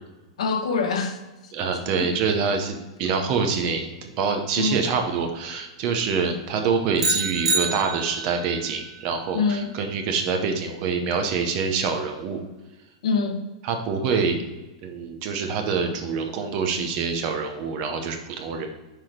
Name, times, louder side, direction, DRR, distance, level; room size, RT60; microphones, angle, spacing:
voice 1, 0.4-1.5 2.0-2.1 4.6-4.8 9.3-9.8 13.0-13.5, left 4 dB, 65° left, 6 dB, 1.0 m, -25 dB
voice 2, 1.5-12.4 13.6-14.4 14.8-18.7, right 5 dB, 25° right, 5 dB, 0.7 m, -26 dB
sound 1, 7.0-8.4, right 3 dB, 70° right, 1.5 m, -25 dB
5.9 x 4.7 x 5.0 m, 1.1 s
supercardioid pair, 180°, 3 cm